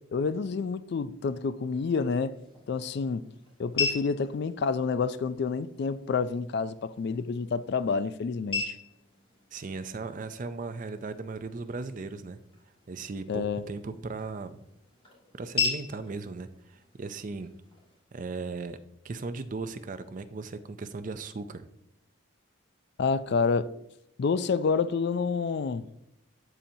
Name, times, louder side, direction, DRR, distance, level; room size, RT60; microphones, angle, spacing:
voice 1, 0.1-2.4 2.7-3.2 3.6-8.8 13.3-13.6 23.0-23.7 24.2-25.9, left 5 dB, 55° left, 0.3 m, -28 dB
sound 1, 2.0-18.0, left 4 dB, 25° left, 2.5 m, -39 dB
voice 2, 9.5-12.4 12.9-14.6 15.4-17.5 18.1-18.8 19.0-21.7, right 3 dB, 40° right, 0.4 m, -37 dB
12.5 x 4.3 x 2.7 m
head